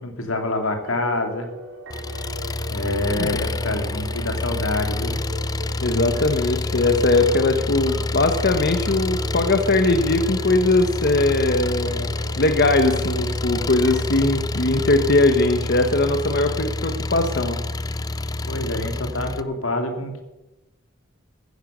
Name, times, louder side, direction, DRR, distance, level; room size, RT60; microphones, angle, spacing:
voice 1, 0.0-1.5 2.7-5.2 18.5-20.2, left 2 dB, 85° left, 5 dB, 2.5 m, -26 dB
sound 1, 0.6-14.2, equal, 80° right, 2.6 m, -38 dB
Engine, 1.9-19.4, left 2 dB, 20° left, 0.4 m, -28 dB
voice 2, 5.8-17.6, left 2 dB, 55° left, 6 dB, 1.2 m, -20 dB
14.5 x 10.0 x 6.7 m, 0.99 s
head